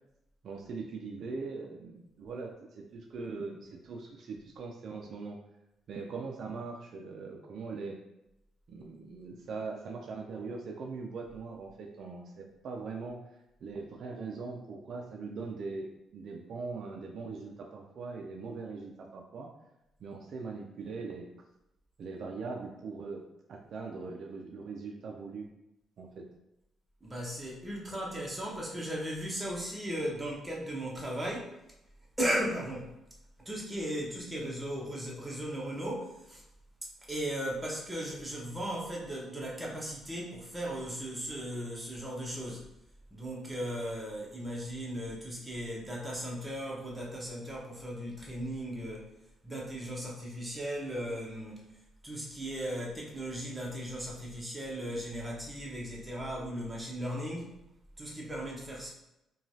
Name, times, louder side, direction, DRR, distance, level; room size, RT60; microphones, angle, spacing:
voice 1, 0.4-5.4 5.9-8.0 8.7-13.2 13.6-19.5 20.0-21.3 22.0-23.2 23.5-25.5 26.0-26.3, right 4 dB, 65° right, 1 dB, 0.4 m, -41 dB
voice 2, 27.0-31.5 32.2-32.9 33.4-36.4 37.1-42.6 43.1-49.1 49.4-51.6 52.0-57.6 58.0-58.9, equal, 15° right, -3 dB, 0.8 m, -37 dB
2.9 x 2.3 x 2.7 m, 0.88 s
cardioid pair, 90°, 0 cm